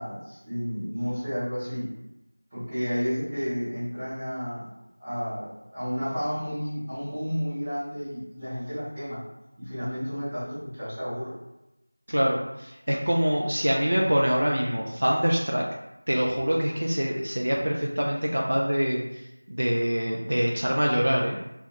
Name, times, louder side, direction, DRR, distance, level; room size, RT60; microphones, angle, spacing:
voice 1, 0.0-1.9 2.5-4.7 5.0-9.2 9.6-11.4, equal, 10° right, -17 dB, 0.8 m, -31 dB
voice 2, 12.1-15.7 16.1-19.0 19.5-21.4, equal, 60° right, -2 dB, 0.3 m, -25 dB
2.1 x 2.0 x 2.8 m, 0.92 s
figure-of-eight pair, 175°, 0 cm